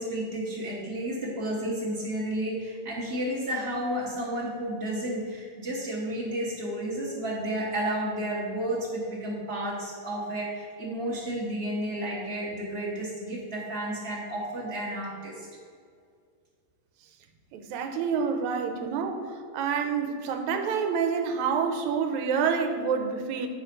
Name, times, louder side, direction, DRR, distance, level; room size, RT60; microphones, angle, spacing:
voice 1, 0.0-15.5, right 1 dB, 55° right, -7 dB, 0.6 m, -32 dB
voice 2, 17.5-23.5, right 6 dB, 90° right, 6 dB, 2.0 m, -28 dB
8.9 x 4.3 x 5.2 m, 2.2 s
omnidirectional pair, 3.3 m